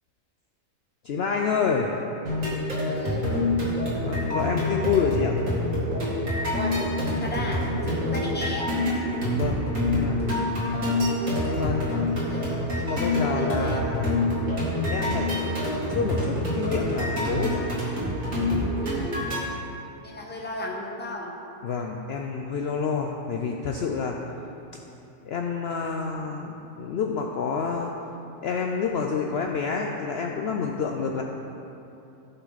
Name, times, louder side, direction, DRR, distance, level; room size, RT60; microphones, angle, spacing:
voice 1, 1.0-2.0 4.0-5.3 9.3-10.7 11.4-12.1 12.7-14.2 14.9-15.6 15.9-17.8 21.6-24.2 25.2-27.9 28.4-31.2, left 5 dB, 60° left, 1 dB, 0.7 m, -28 dB
sound 1, 2.3-19.4, left 1 dB, 80° right, 2.5 m, -26 dB
voice 2, 2.9-3.3 6.5-6.7 7.2-8.8 11.4-11.8 12.3-13.8 18.8-19.0 20.0-21.3, left 1 dB, 10° left, -1 dB, 0.9 m, -36 dB
14.5 x 5.7 x 4.0 m, 2.8 s
omnidirectional pair, 1.4 m